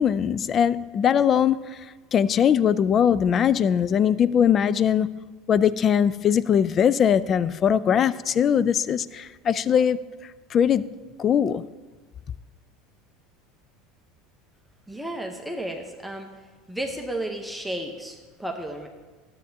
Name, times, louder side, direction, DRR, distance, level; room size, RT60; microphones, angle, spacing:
voice 1, 0.0-1.6 2.1-10.0 10.5-10.9 11.2-11.6, left 8 dB, 40° left, 0.3 m, -21 dB
voice 2, 14.9-16.3 16.7-18.9, right 1 dB, ahead, 0.9 m, -33 dB
12.5 x 7.9 x 2.8 m
supercardioid pair, 100°, 0 cm